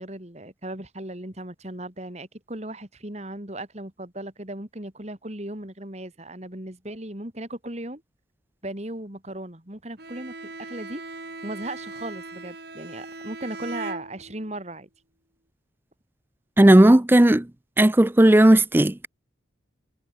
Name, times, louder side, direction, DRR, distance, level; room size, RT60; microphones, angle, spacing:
voice 1, 0.0-8.0 8.6-11.0 11.4-14.9, right 1 dB, 35° right, 2.9 m, -37 dB
Bowed string instrument, 10.0-14.6, right 2 dB, 55° right, 6.1 m, -39 dB
voice 2, 16.6-17.5 17.8-19.1, right 1 dB, 10° right, 0.4 m, -15 dB
head